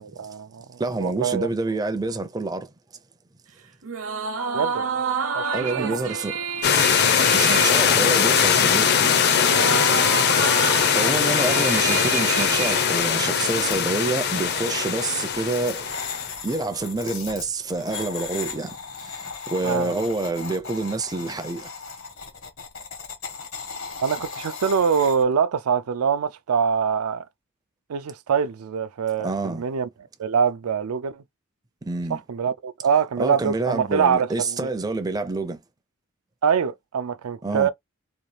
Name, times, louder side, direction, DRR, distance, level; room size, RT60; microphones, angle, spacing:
voice 1, 0.0-1.5 4.5-4.9 5.3-6.0 19.6-19.9 24.0-27.2 27.9-29.9 30.2-31.2 32.1-34.7 36.4-37.7, right 6 dB, 90° right, 0.4 m, -24 dB
voice 2, 0.8-2.7 5.5-6.4 7.3-8.9 11.0-15.9 16.4-21.7 29.2-29.7 31.8-32.2 33.2-35.6 37.4-37.7, right 3 dB, 15° right, 0.4 m, -27 dB
sound 1, 3.8-13.5, right 5 dB, 65° right, 0.8 m, -29 dB
sound 2, 6.6-16.3, left 7 dB, 50° left, 0.6 m, -21 dB
sound 3, 11.7-25.2, left 5 dB, 70° left, 1.2 m, -37 dB
3.9 x 2.4 x 3.2 m
head